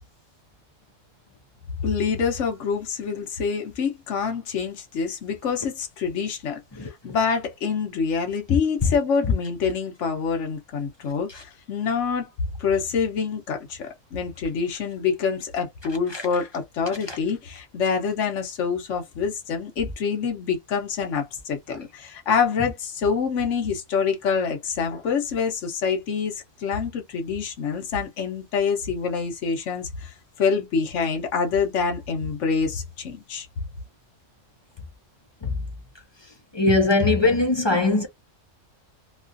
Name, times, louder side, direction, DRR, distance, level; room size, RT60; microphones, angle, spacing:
voice 1, 1.8-12.3 12.6-33.5, left 6 dB, 70° left, 1.2 m, -26 dB
voice 2, 36.5-38.1, left 3 dB, 30° left, 0.5 m, -19 dB
3.0 x 2.4 x 2.5 m
omnidirectional pair, 1.3 m